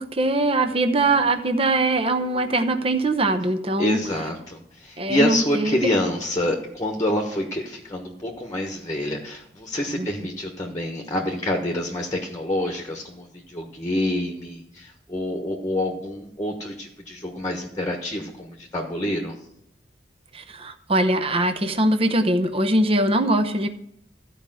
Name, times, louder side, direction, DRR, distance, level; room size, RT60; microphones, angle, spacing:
voice 1, 0.0-4.0 5.0-6.0 10.0-10.1 20.3-23.7, right 2 dB, 35° right, 9 dB, 0.9 m, -22 dB
voice 2, 3.8-19.4, left 1 dB, 20° left, 2 dB, 1.3 m, -27 dB
14.0 x 5.0 x 7.7 m, 0.74 s
head